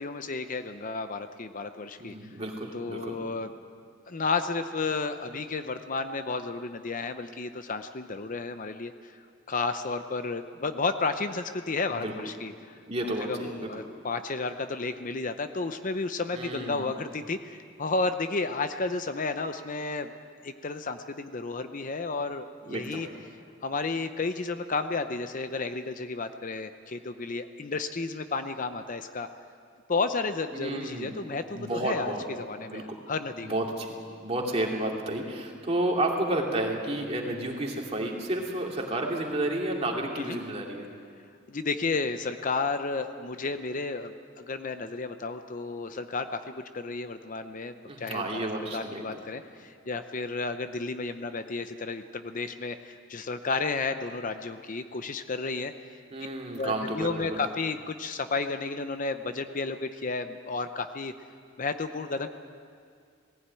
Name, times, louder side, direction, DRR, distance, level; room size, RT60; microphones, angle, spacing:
voice 1, 0.0-2.1 2.7-3.5 4.1-9.1 9.5-12.8 13.2-20.1 20.4-23.1 23.6-29.3 29.9-33.6 40.2-40.4 41.5-55.7 56.6-61.1 61.6-62.3, left 3 dB, 40° left, 9 dB, 0.7 m, -32 dB
voice 2, 2.0-3.2 11.9-12.1 12.9-13.8 16.3-16.9 22.7-23.0 30.5-31.2 31.5-32.2 32.7-33.0 33.4-33.9 34.2-40.9 47.8-49.2 56.1-57.4, right 1 dB, 30° right, 0 dB, 2.7 m, -31 dB
18.5 x 16.0 x 9.1 m, 2.2 s
head